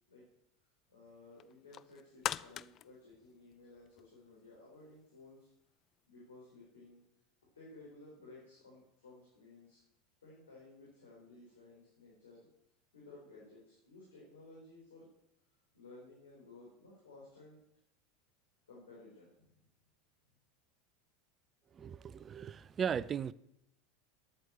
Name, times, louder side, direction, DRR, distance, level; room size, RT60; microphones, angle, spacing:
voice 1, 0.9-5.5 6.1-7.0 7.5-9.8 10.2-12.5 12.9-15.1 15.7-17.6 18.7-19.3, left 2 dB, 70° left, 4.3 m, -56 dB
sound 1, 1.4-4.2 4.6-4.7, left 11 dB, 35° left, 0.3 m, -42 dB
voice 2, 21.7-23.3, right 7 dB, 25° right, 0.5 m, -37 dB
10.0 x 9.1 x 7.5 m
figure-of-eight pair, 80°, 0 cm